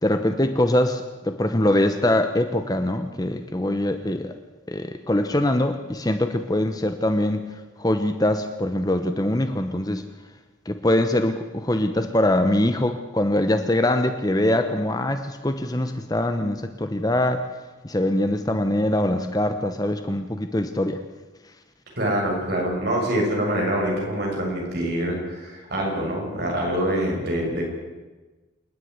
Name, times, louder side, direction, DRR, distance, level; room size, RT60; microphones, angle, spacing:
voice 1, 0.0-4.3 4.7-7.5 7.8-10.0 10.7-17.4 17.8-21.0, left 1 dB, 20° left, 8 dB, 0.9 m, -23 dB
voice 2, 22.0-27.6, right 1 dB, 55° right, -1 dB, 7.0 m, -25 dB
28.0 x 9.9 x 9.6 m, 1.2 s
head